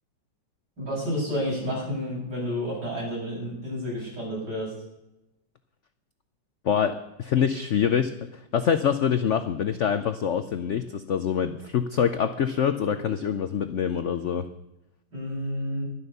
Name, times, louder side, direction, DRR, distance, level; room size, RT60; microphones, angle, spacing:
voice 1, 0.8-4.7 15.1-15.8, equal, 60° right, -5 dB, 7.9 m, -30 dB
voice 2, 6.6-14.4, left 8 dB, 70° left, 10 dB, 0.7 m, -25 dB
12.0 x 11.5 x 6.7 m, 0.92 s
omnidirectional pair, 2.1 m